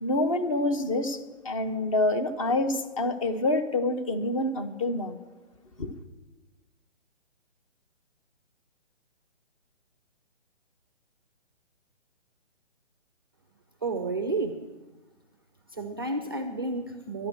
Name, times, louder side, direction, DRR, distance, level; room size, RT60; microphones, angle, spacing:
voice 1, 0.0-5.2 5.8-5.9, left 2 dB, 30° left, 0.8 m, -27 dB
voice 2, 13.8-14.6 15.7-17.3, right 3 dB, 20° right, 0.4 m, -31 dB
11.5 x 10.5 x 7.7 m
hypercardioid pair, 150°, 35 cm